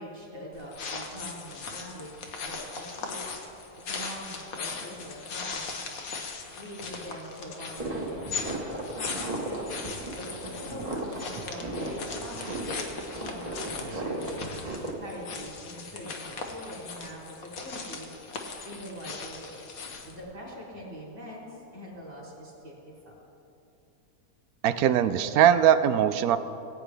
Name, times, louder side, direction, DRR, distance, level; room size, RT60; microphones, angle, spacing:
voice 1, 0.0-3.3 3.8-5.9 6.5-9.4 10.1-12.9 13.1-14.5 15.0-18.1 18.6-19.6 20.0-23.1, equal, 55° right, -5 dB, 3.5 m, -43 dB
sound 1, 0.5-20.2, left 4 dB, 75° left, 1.5 m, -39 dB
sound 2, 7.8-14.9, right 1 dB, 25° right, 1.4 m, -35 dB
voice 2, 24.6-26.4, right 10 dB, 85° right, 12 dB, 1.1 m, -21 dB
19.0 x 8.9 x 3.4 m, 2.9 s
omnidirectional pair, 1.5 m